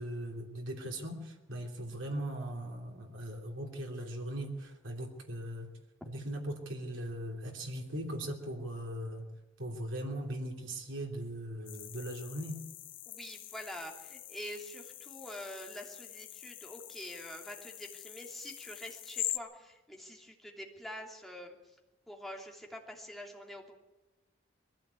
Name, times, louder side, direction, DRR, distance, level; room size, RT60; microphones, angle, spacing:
voice 1, 0.0-5.7 6.0-9.3 9.6-12.6, right 1 dB, 75° right, 1 dB, 3.3 m, -39 dB
sound 1, 11.6-19.4, left 13 dB, 70° left, 1.3 m, -44 dB
voice 2, 13.1-21.6 22.1-23.7, left 1 dB, ahead, 0 dB, 2.8 m, -46 dB
21.5 x 15.0 x 8.4 m, 1.1 s
head